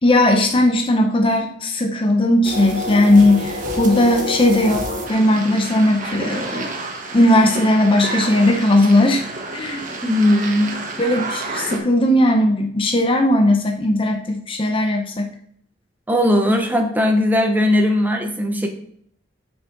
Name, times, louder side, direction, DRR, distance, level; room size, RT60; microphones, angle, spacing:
voice 1, 0.0-4.8 5.1-6.7 7.1-9.3 9.5-9.8 11.0-15.3, left 1 dB, 30° left, 3 dB, 0.7 m, -17 dB
sound 1, 2.4-11.8, right 1 dB, 45° right, 1.3 m, -29 dB
voice 2, 10.0-10.7 16.1-18.7, left 1 dB, 10° right, 3 dB, 1.0 m, -18 dB
6.4 x 6.0 x 3.8 m, 0.65 s
head